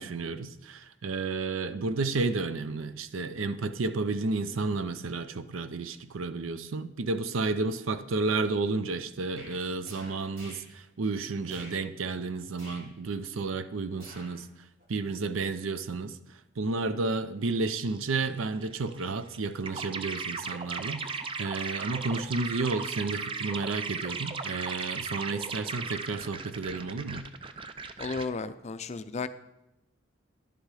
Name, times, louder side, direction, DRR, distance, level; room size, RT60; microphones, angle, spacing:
voice 1, 0.0-14.5 14.9-16.2 16.6-27.2, right 3 dB, 90° right, 0.6 m, -31 dB
sound 1, 9.4-9.6 9.8-10.7 11.5-11.8 12.6-12.9 14.0-14.4 14.8-14.9, equal, 50° right, 3.9 m, -48 dB
sound 2, 17.6-18.3 18.6-28.3, right 4 dB, 25° right, 0.4 m, -37 dB
voice 2, 28.0-29.3, left 4 dB, 35° left, 0.4 m, -34 dB
11.0 x 6.6 x 4.8 m
head